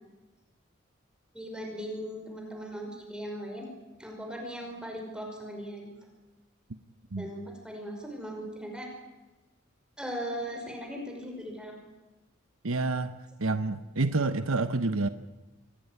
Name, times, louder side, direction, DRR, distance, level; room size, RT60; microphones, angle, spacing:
voice 1, 1.3-3.7 4.0-5.9 7.2-8.9 10.0-11.8, equal, 5° right, 1 dB, 5.5 m, -38 dB
voice 2, 12.6-13.1 13.4-15.1, right 3 dB, 90° right, 10 dB, 1.1 m, -28 dB
26.5 x 18.0 x 9.6 m, 1.1 s
head